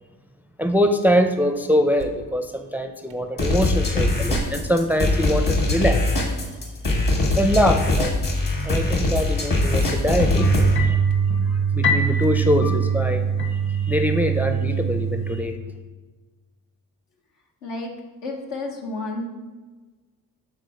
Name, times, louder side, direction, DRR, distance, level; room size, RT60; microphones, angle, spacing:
voice 1, 0.6-6.1 7.4-10.5 10.8-11.0 11.4-13.3 13.5-15.6, equal, 5° right, 7 dB, 0.4 m, -23 dB
sound 1, 2.0-2.3 3.1-3.2 4.2-4.9 5.6-5.7 7.9-8.4 9.0-9.1 10.1-10.6 11.1-11.2 12.2-12.7, right 5 dB, 90° right, 0.6 m, -36 dB
sound 2, 3.4-10.8, left 2 dB, 50° left, 1.6 m, -22 dB
sound 3, 10.3-15.4, right 5 dB, 30° left, 0.7 m, -22 dB
voice 2, 17.6-17.9 18.2-19.3, left 2 dB, 75° left, 0 dB, 1.1 m, -31 dB
4.9 x 3.7 x 5.6 m, 1.3 s
hypercardioid pair, 45°, 42 cm